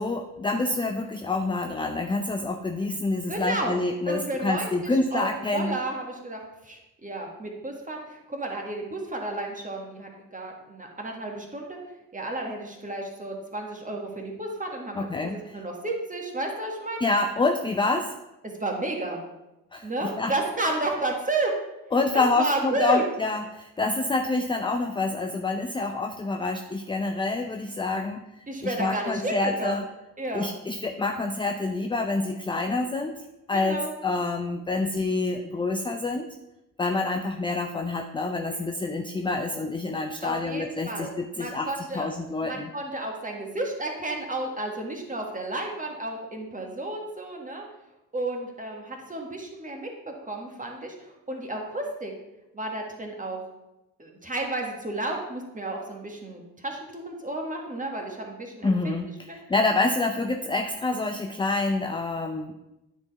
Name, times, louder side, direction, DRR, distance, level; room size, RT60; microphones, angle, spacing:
voice 1, 0.0-5.8 15.0-15.6 17.0-18.1 19.7-20.3 21.9-28.3 28.6-29.9 30.3-33.1 33.5-36.3 36.8-41.7 41.9-42.7 58.6-62.5, left 3 dB, 10° left, 5 dB, 0.5 m, -27 dB
voice 2, 3.3-3.8 4.1-11.8 12.1-17.0 18.4-19.2 19.8-21.5 22.1-23.0 28.5-29.8 30.2-30.5 33.5-33.9 40.2-42.1 42.4-47.6 48.1-52.1 52.5-53.4 54.0-59.0 59.3-59.4, right 2 dB, 15° right, 1 dB, 1.9 m, -32 dB
9.5 x 4.5 x 4.1 m, 0.95 s
hypercardioid pair, 50°, 48 cm